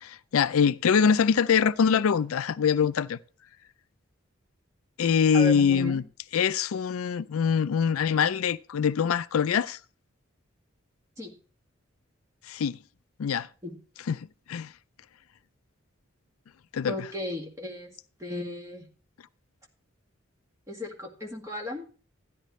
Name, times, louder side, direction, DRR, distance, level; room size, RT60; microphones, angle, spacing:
voice 1, 0.0-3.2 5.0-6.0 6.3-9.8 12.5-12.8 13.2-13.5 14.1-14.7 16.7-17.0, left 7 dB, 90° left, 0.4 m, -24 dB
voice 2, 5.3-6.0 11.2-11.3 13.6-13.8 16.8-17.9 18.2-18.9 20.7-21.8, left 1 dB, 15° right, 1.9 m, -35 dB
13.0 x 10.0 x 3.1 m
head